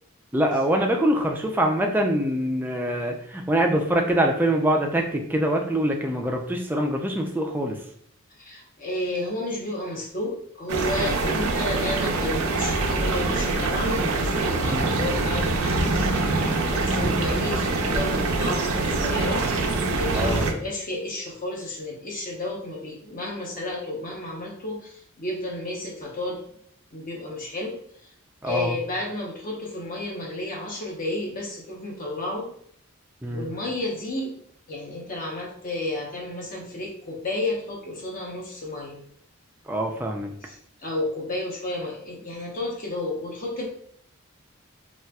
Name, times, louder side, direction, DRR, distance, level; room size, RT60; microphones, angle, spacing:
voice 1, 0.3-7.8 14.6-15.0 16.9-17.2 20.1-20.5 28.4-28.8 33.2-33.5 39.7-40.3, right 1 dB, 10° right, 1 dB, 0.3 m, -24 dB
voice 2, 8.4-16.1 16.5-19.5 19.9-26.4 26.9-27.8 28.4-32.5 33.3-34.4 34.7-39.0 40.4-40.6 40.8-43.7, left 2 dB, 40° left, -1 dB, 0.7 m, -32 dB
sound 1, 10.7-20.5, right 3 dB, 90° right, 0.5 m, -24 dB
4.0 x 2.4 x 2.2 m, 0.64 s
head